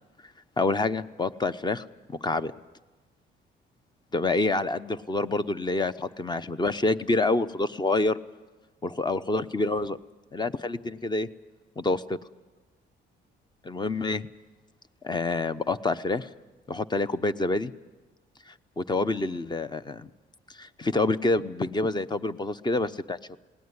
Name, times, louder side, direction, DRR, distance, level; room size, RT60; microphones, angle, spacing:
voice 1, 0.6-2.5 4.1-8.2 8.8-10.0 10.3-11.3 11.8-12.2 13.6-14.3 15.0-16.3 16.7-17.7 18.5-20.1 20.5-23.4, left 2 dB, 20° left, 14 dB, 0.8 m, -27 dB
20.5 x 17.5 x 9.8 m, 1.2 s
cardioid pair, 90°, 20 cm